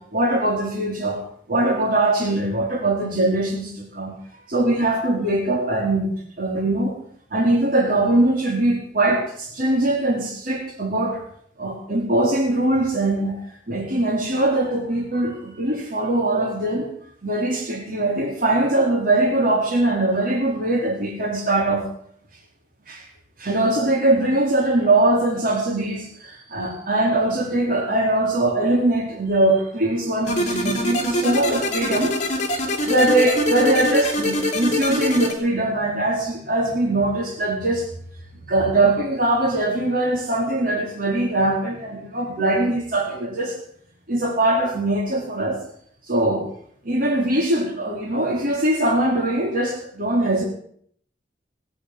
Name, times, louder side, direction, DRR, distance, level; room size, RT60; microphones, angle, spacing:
voice 1, 0.1-1.2 1.5-4.1 4.5-6.9 7.3-11.2 11.6-13.4 13.7-16.8 17.2-21.9 22.9-23.0 23.4-32.1 32.8-37.9 38.5-43.5 44.1-45.6 46.1-46.5 46.8-50.4, right 2 dB, 55° right, -2 dB, 4.4 m, -21 dB
sound 1, 30.3-35.3, left 1 dB, 45° left, 3.2 m, -24 dB
19.0 x 8.5 x 8.0 m, 0.63 s
head